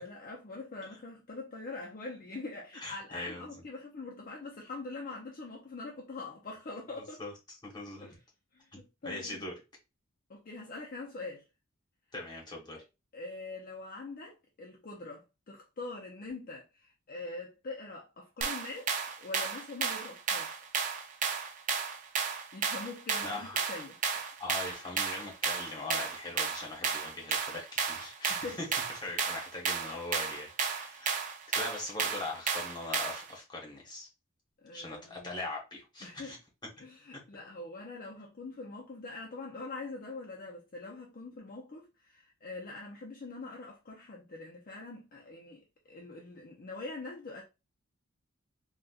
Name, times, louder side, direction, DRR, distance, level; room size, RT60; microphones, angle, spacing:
voice 1, 0.0-7.2 8.0-8.1 8.5-9.4 10.3-11.4 13.1-18.9 19.2-20.5 22.5-24.3 28.3-28.6 34.6-35.4 36.0-36.4 36.8-45.6 45.9-47.4, left 3 dB, 45° left, 0.6 m, -43 dB
voice 2, 2.7-3.6 7.2-8.1 8.7-9.5 12.1-12.8 23.2-23.6 24.4-28.7 29.0-31.2 31.5-34.1 34.7-36.4, left 2 dB, 20° left, 1.1 m, -41 dB
sound 1, 18.4-33.3, right 6 dB, 40° right, 0.5 m, -33 dB
3.9 x 2.3 x 2.4 m
head